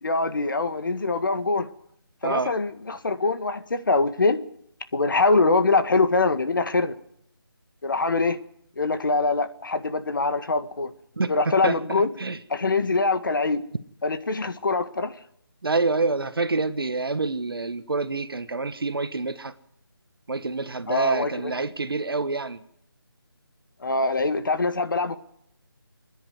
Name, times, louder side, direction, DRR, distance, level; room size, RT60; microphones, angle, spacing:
voice 1, 0.0-1.7 2.2-4.4 4.9-6.9 7.8-8.4 8.8-10.9 11.3-12.1 12.5-13.6 14.0-15.1 20.9-21.5 23.8-25.2, left 3 dB, 55° left, 1.8 m, -23 dB
voice 2, 2.2-2.5 11.2-11.3 11.6-12.4 15.6-19.5 20.3-22.6, right 3 dB, 70° right, 1.4 m, -27 dB
26.5 x 10.5 x 9.6 m
figure-of-eight pair, 170°, 13 cm